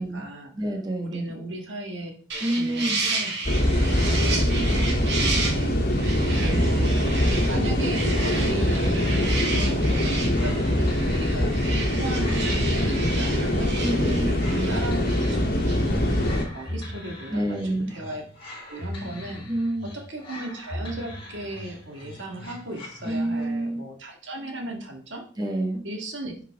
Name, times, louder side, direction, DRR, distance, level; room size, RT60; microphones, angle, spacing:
voice 1, 0.0-0.5 1.0-3.3 3.7-5.8 6.3-6.9 7.5-18.3 18.7-19.5 19.8-25.3 25.8-26.3, right 1 dB, 75° right, 3 dB, 1.8 m, -37 dB
voice 2, 0.5-1.2 2.4-3.1 13.8-14.8 17.3-17.9 19.5-19.9 23.0-23.8 25.4-25.8, right 1 dB, 20° right, 1 dB, 1.5 m, -28 dB
sound 1, 2.3-16.3, right 3 dB, 60° right, 2.2 m, -33 dB
sound 2, 3.4-16.4, left 1 dB, 55° left, 1.8 m, -23 dB
sound 3, 7.7-23.6, left 1 dB, 30° left, 4.0 m, -39 dB
10.5 x 5.7 x 3.6 m, 0.42 s
head